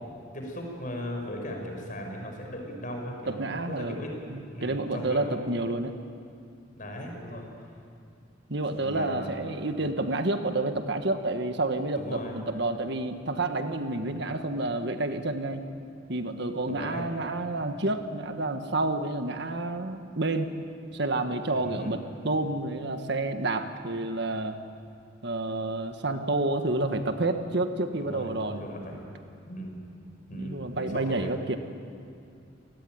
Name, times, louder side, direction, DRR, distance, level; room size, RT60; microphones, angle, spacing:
voice 1, 0.3-4.1 4.5-5.4 6.8-7.4 8.8-9.3 12.0-12.3 16.6-17.1 21.5-22.0 28.0-29.1 29.5-29.8 30.3-31.3, equal, 45° left, 2 dB, 6.0 m, -38 dB
voice 2, 3.3-4.0 4.3-5.9 8.5-15.6 16.1-20.5 20.9-24.6 25.2-28.6 30.3-31.6, right 2 dB, 65° right, 7 dB, 1.6 m, -29 dB
29.0 x 18.5 x 9.5 m, 2.4 s
head